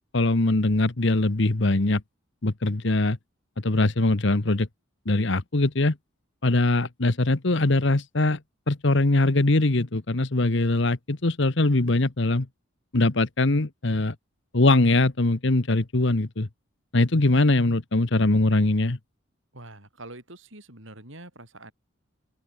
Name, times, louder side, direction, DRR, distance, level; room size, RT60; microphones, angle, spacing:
voice 1, 0.1-2.0 2.4-3.2 3.6-4.7 5.0-6.0 6.4-8.4 8.7-12.5 12.9-14.1 14.5-16.5 16.9-19.0, left 2 dB, 60° left, 1.2 m, -22 dB
voice 2, 19.5-21.7, right 2 dB, 65° right, 7.3 m, -44 dB
open air
head